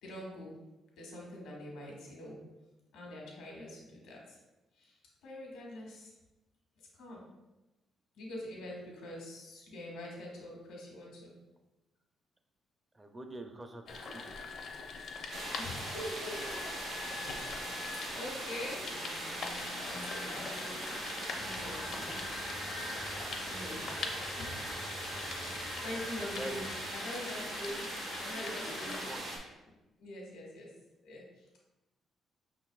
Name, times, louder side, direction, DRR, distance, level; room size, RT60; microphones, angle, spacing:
voice 1, 0.0-0.6 1.0-2.4 2.9-4.4 4.8-4.9 5.2-6.1 6.9-7.3 8.1-11.3 15.5-16.8 17.4-19.2 19.8-22.2 23.4-23.9 24.3-25.1 25.5-29.0 30.0-30.7 31.0-31.2, left 1 dB, 90° left, -2 dB, 1.4 m, -44 dB
voice 2, 12.9-14.4 26.3-26.9 27.7-27.8 28.4-29.2, right 1 dB, 20° right, 5 dB, 0.5 m, -46 dB
sound 1, 13.9-29.2, left 4 dB, 70° left, 0.7 m, -43 dB
sound 2, 15.3-29.4, right 1 dB, 90° right, 1.4 m, -41 dB
sound 3, 21.3-26.8, right 1 dB, 55° right, 0.8 m, -53 dB
5.6 x 3.9 x 2.4 m, 1.1 s
cardioid pair, 90°, 0 cm